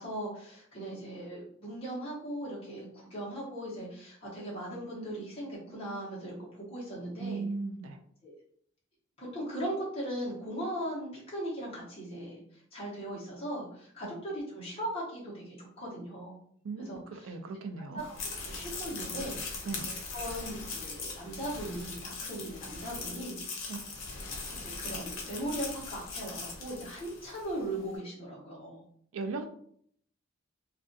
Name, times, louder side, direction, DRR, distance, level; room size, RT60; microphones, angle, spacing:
voice 1, 0.0-7.4 8.2-8.3 9.2-12.4 12.7-16.4 16.8-17.3 17.9-18.1 18.4-19.7 20.1-23.8 24.5-28.8, right 1 dB, 30° left, -6 dB, 0.8 m, -39 dB
voice 2, 7.2-8.0 14.0-14.1 16.6-18.0 19.6-19.9 23.7-23.8 29.1-29.5, right 3 dB, 80° right, 6 dB, 0.4 m, -37 dB
sound 1, 18.0-27.5, left 3 dB, 85° left, 0.6 m, -40 dB
2.4 x 2.2 x 2.6 m, 0.63 s
head